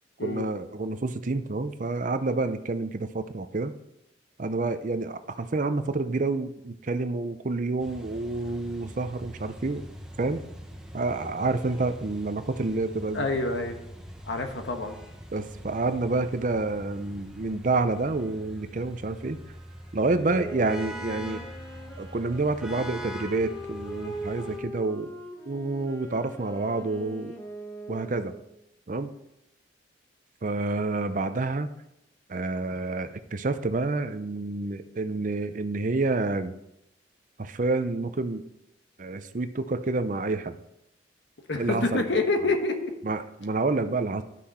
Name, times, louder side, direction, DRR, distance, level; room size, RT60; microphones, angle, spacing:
voice 1, 0.2-3.7 4.4-9.9 10.2-10.4 10.9-13.3 15.3-19.4 19.9-21.4 22.0-25.1 25.5-27.3 27.9-28.3 28.9-29.1 30.4-31.7 32.3-36.5 37.4-38.4 39.0-40.6 41.6-42.0 43.0-44.2, right 3 dB, 45° right, 10 dB, 0.6 m, -28 dB
sound 1, 7.8-24.6, equal, 5° right, 0.8 m, -43 dB
voice 2, 13.1-13.8 14.2-15.0 41.5-42.9, left 2 dB, 75° left, 5 dB, 1.3 m, -27 dB
Wind instrument woodwind instrument, 20.2-28.5, right 1 dB, 15° left, 1.3 m, -41 dB
11.5 x 6.2 x 4.2 m, 0.82 s
head